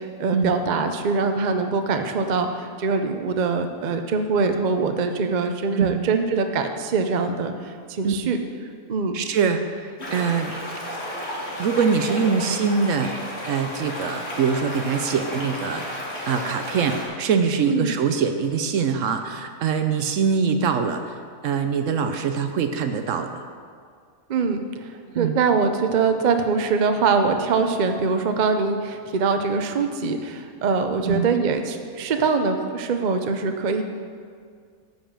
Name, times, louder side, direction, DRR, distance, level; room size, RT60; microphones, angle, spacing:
voice 1, 0.0-8.4 8.9-9.1 17.7-17.9 24.3-33.8, right 4 dB, 50° right, 6 dB, 0.5 m, -23 dB
voice 2, 9.1-10.5 11.6-13.1 13.4-21.2 21.4-23.4 25.1-25.4 31.0-31.3, right 6 dB, 65° right, 7 dB, 0.9 m, -23 dB
sound 1, 10.0-17.1, equal, 45° left, 2.5 m, -32 dB
10.0 x 5.5 x 7.3 m, 2.1 s
omnidirectional pair, 1.6 m